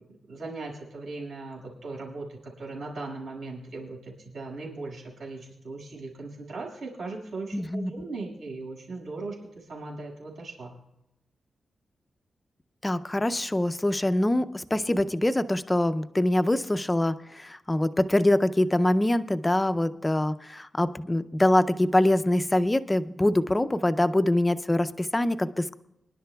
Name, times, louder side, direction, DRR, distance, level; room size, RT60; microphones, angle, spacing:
voice 1, 0.3-10.7, right 3 dB, 75° right, -2 dB, 6.0 m, -38 dB
voice 2, 7.5-7.9 12.8-25.7, left 1 dB, 10° left, 11 dB, 0.4 m, -24 dB
26.5 x 11.0 x 2.3 m, 0.87 s
wide cardioid pair, 165°, 0 cm